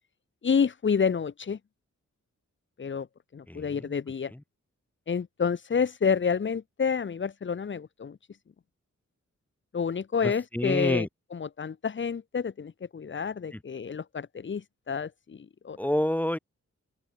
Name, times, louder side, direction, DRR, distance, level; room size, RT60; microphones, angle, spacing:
voice 1, 0.4-1.6 2.8-3.1 3.3-4.3 5.1-8.2 9.7-11.1 11.3-15.8, left 6 dB, 40° left, 0.8 m, -29 dB
voice 2, 3.5-3.9 4.3-4.4 10.2-11.1 13.5-13.6 15.8-16.4, left 1 dB, 5° left, 0.5 m, -28 dB
open air
wide cardioid pair, 150°, 29 cm